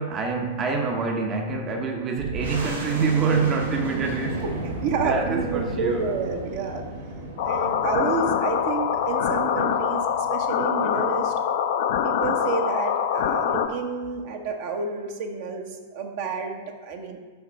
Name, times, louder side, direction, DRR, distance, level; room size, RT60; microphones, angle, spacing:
voice 1, 0.0-4.4 5.0-6.1, right 5 dB, 25° right, 2 dB, 0.9 m, -26 dB
sound 1, 2.2-11.4, right 2 dB, 80° right, 1.7 m, -34 dB
voice 2, 4.8-6.8 7.4-11.3 12.0-17.2, right 4 dB, 55° right, 3 dB, 1.1 m, -29 dB
sound 2, 7.4-13.7, left 8 dB, 55° left, 0.6 m, -24 dB
5.8 x 5.7 x 5.6 m, 1.4 s
figure-of-eight pair, 100°, 0 cm